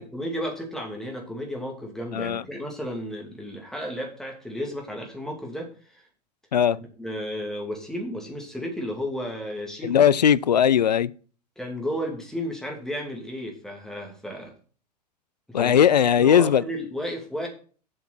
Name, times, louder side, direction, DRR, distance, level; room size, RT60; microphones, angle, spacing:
voice 1, 0.0-6.1 6.8-10.0 11.6-14.5 15.5-15.7 16.2-17.5, equal, ahead, 2.5 m, -33 dB
voice 2, 9.8-11.1 15.5-16.6, left 8 dB, 75° left, 0.4 m, -19 dB
7.8 x 5.8 x 6.0 m
figure-of-eight pair, 90°, 21 cm